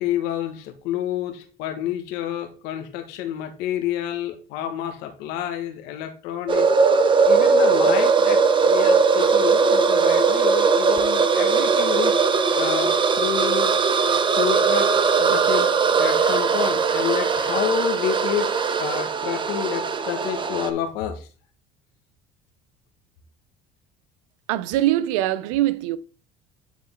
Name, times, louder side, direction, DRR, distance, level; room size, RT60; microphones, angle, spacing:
voice 1, 0.0-6.7 7.3-12.1 12.5-13.8 14.4-21.3, left 10 dB, 75° left, 1.5 m, -29 dB
sound 1, 6.5-20.7, right 5 dB, 30° right, 0.9 m, -19 dB
voice 2, 24.5-26.0, right 14 dB, 85° right, 0.5 m, -22 dB
9.7 x 3.7 x 3.7 m
supercardioid pair, 90°, 17 cm